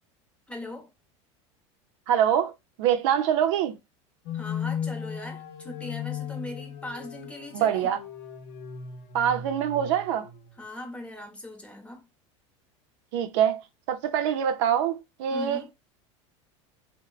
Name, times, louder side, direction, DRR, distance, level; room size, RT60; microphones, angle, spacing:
voice 1, 0.5-0.9 4.3-8.0 10.6-12.0 15.3-15.7, left 1 dB, 10° left, 0.8 m, -40 dB
voice 2, 2.1-2.5 2.8-3.8 7.5-8.0 9.1-10.3 13.1-13.6 13.9-15.7, right 9 dB, 75° right, 0.5 m, -24 dB
sound 1, 4.3-10.5, left 7 dB, 70° left, 0.7 m, -36 dB
3.0 x 2.1 x 2.3 m
supercardioid pair, 105°, 16 cm